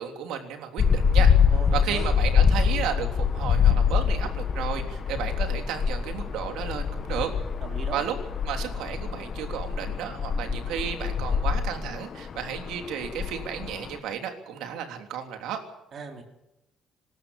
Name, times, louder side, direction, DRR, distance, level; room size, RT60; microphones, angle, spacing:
voice 1, 0.0-1.3 1.7-7.3 7.9-8.1 8.4-15.6, right 8 dB, 85° right, 5 dB, 3.3 m, -33 dB
sound 1, 0.8-14.0, left 6 dB, 40° left, 1.4 m, -25 dB
voice 2, 1.5-2.1 7.1-7.3 7.6-8.0 15.9-16.2, right 5 dB, 45° right, 3 dB, 3.9 m, -39 dB
25.0 x 13.0 x 8.3 m, 0.96 s
cardioid pair, 130°, 0 cm